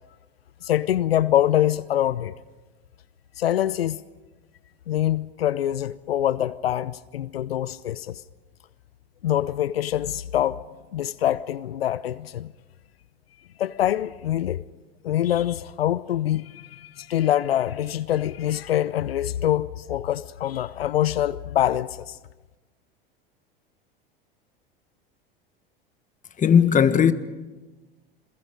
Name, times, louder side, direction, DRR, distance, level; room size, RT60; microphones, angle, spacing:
voice 1, 0.6-2.3 3.4-4.0 4.9-8.2 9.2-10.6 10.9-12.5 13.6-14.6 15.0-22.2, left 12 dB, 85° left, 0.6 m, -24 dB
voice 2, 26.4-27.1, left 8 dB, 25° left, 1.4 m, -17 dB
28.0 x 22.5 x 5.2 m
hypercardioid pair, 85°, 29 cm